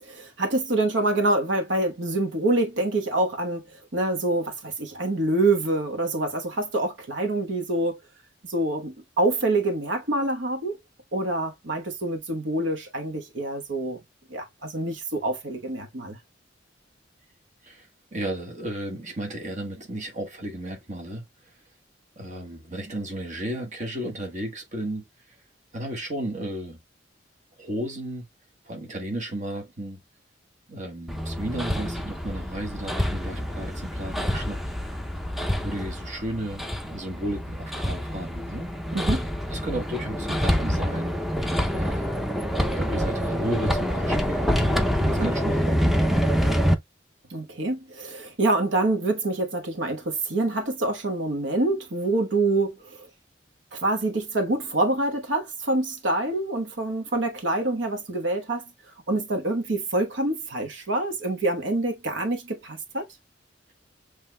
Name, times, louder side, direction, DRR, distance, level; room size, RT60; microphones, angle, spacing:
voice 1, 0.0-8.0 8.4-10.7 11.1-14.0 14.3-16.2 38.9-39.3 45.0-45.3 47.3-53.1 53.7-58.6 59.1-63.0, right 2 dB, 80° right, 1.2 m, -26 dB
voice 2, 17.6-21.5 22.2-25.0 25.7-26.8 27.6-28.2 28.6-30.0 30.7-35.0 35.6-38.7 39.5-41.1 41.7-42.1 42.8-44.5 45.1-46.2, right 1 dB, 40° right, 1.3 m, -34 dB
Hammer, 31.1-46.7, equal, ahead, 0.6 m, -26 dB
7.2 x 3.2 x 2.2 m
head